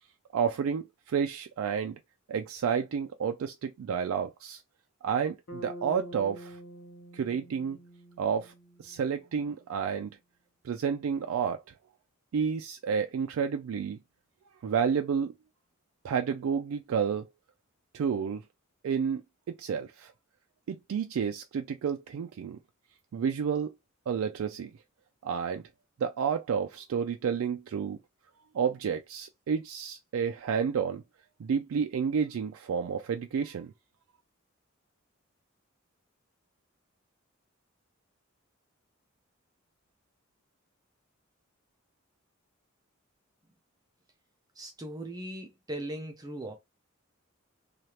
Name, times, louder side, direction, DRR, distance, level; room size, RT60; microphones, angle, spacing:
voice 1, 0.3-2.0 2.3-4.6 5.0-6.6 7.1-7.8 8.2-8.5 8.8-10.2 10.6-11.6 12.3-14.0 14.6-15.3 16.0-17.3 17.9-18.4 18.8-19.2 19.5-20.1 20.7-22.6 23.1-23.7 24.1-24.7 25.2-25.6 26.0-28.0 28.5-31.0 31.4-33.7, right 7 dB, 85° right, 0.3 m, -30 dB
Bass guitar, 5.5-9.6, right 1 dB, 80° left, 0.8 m, -46 dB
voice 2, 44.6-46.5, right 1 dB, 20° right, 0.4 m, -39 dB
3.1 x 2.4 x 2.8 m
head